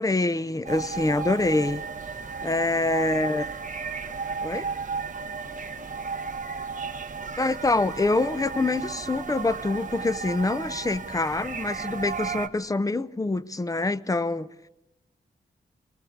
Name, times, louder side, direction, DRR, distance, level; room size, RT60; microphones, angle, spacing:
voice 1, 0.0-1.8 2.4-3.5 4.4-4.6 7.4-14.5, left 2 dB, 20° left, 0.8 m, -25 dB
sound 1, 0.7-12.5, right 5 dB, 50° right, 1.6 m, -34 dB
voice 2, 5.2-6.3, equal, 50° left, 8.0 m, -57 dB
24.5 x 19.0 x 8.7 m
wide cardioid pair, 105°, 17 cm